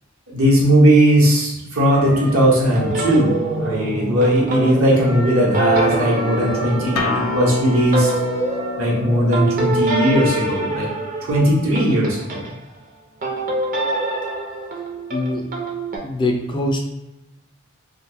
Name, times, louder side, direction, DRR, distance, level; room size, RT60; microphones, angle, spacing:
voice 1, 0.3-3.3 3.6-8.1 8.8-10.9 11.2-12.5, right 1 dB, 70° right, -4 dB, 1.0 m, -17 dB
sound 1, 1.9-12.5 13.2-16.0, right 2 dB, 40° right, 0.6 m, -25 dB
Wind instrument woodwind instrument, 5.0-9.8, right 1 dB, 90° right, 1.1 m, -36 dB
Acoustic guitar, 7.0-12.1, left 4 dB, 90° left, 0.4 m, -30 dB
voice 2, 15.1-15.5 16.0-16.8, left 1 dB, 20° left, 2 dB, 0.3 m, -22 dB
2.6 x 2.2 x 3.4 m, 0.94 s
head